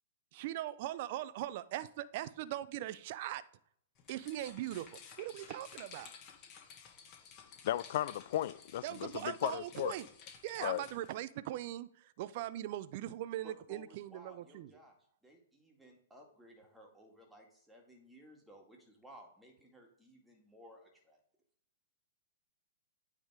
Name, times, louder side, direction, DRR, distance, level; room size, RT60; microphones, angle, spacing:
voice 1, 0.3-3.4 4.1-6.1 8.8-10.1 10.4-14.7, right 14 dB, 50° right, 0.4 m, -40 dB
sound 1, 4.0-11.1, left 6 dB, 35° left, 1.6 m, -55 dB
voice 2, 7.6-9.9 10.6-10.8, left 13 dB, 55° left, 0.3 m, -35 dB
voice 3, 13.4-15.0 15.2-21.2, equal, 5° right, 1.8 m, -58 dB
8.9 x 3.5 x 4.7 m
hypercardioid pair, 125°, 0 cm